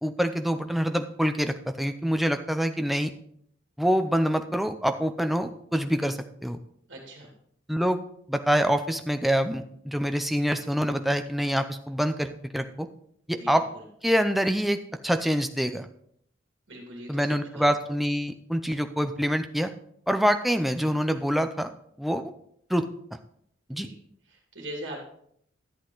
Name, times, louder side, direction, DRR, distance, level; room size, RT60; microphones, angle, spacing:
voice 1, 0.0-3.1 3.8-6.6 7.7-8.0 8.3-12.9 13.3-13.6 14.0-15.9 17.1-19.7 20.1-21.7 22.0-22.3 22.7-22.9 23.7-23.9, equal, ahead, 8 dB, 0.5 m, -26 dB
voice 2, 6.9-7.3 13.3-13.5 16.7-17.3 17.5-17.7 23.7-24.0 24.3-25.1, right 1 dB, 60° right, -1 dB, 2.5 m, -40 dB
11.5 x 8.2 x 3.9 m, 0.68 s
head